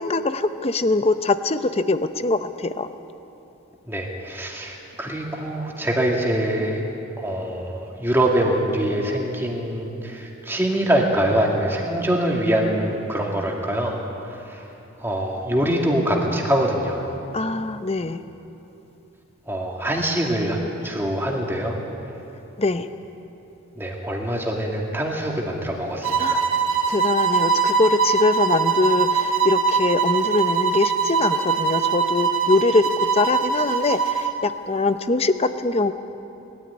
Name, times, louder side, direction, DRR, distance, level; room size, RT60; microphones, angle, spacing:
voice 1, 0.0-2.9 17.3-18.2 22.6-22.9 26.2-26.4 26.9-35.9, left 3 dB, 30° left, 11 dB, 0.6 m, -22 dB
voice 2, 3.9-6.8 7.2-14.0 14.3-14.6 15.0-17.1 19.5-20.6 20.8-21.8 23.8-26.4, right 1 dB, 10° right, -1 dB, 2.3 m, -24 dB
sound 1, 26.0-34.4, right 6 dB, 70° right, 1.8 m, -22 dB
21.0 x 13.5 x 9.6 m, 3.0 s
head